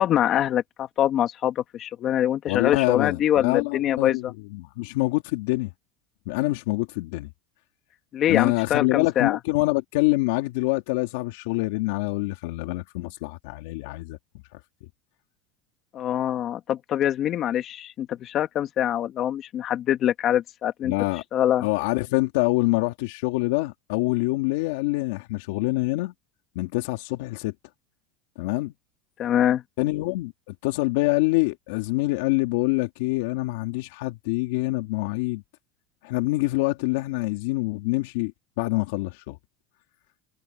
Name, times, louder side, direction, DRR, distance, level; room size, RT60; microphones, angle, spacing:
voice 1, 0.0-4.3 8.1-9.4 15.9-20.9 21.3-21.7 29.2-29.6, left 11 dB, 35° left, 2.1 m, -24 dB
voice 2, 2.5-5.7 6.3-7.3 8.3-14.2 14.5-14.6 20.8-21.2 21.6-26.1 26.5-27.5 28.4-28.7 29.8-35.4 36.0-38.3 38.6-39.4, left 21 dB, 75° left, 2.9 m, -25 dB
supercardioid pair, 140°, 0 cm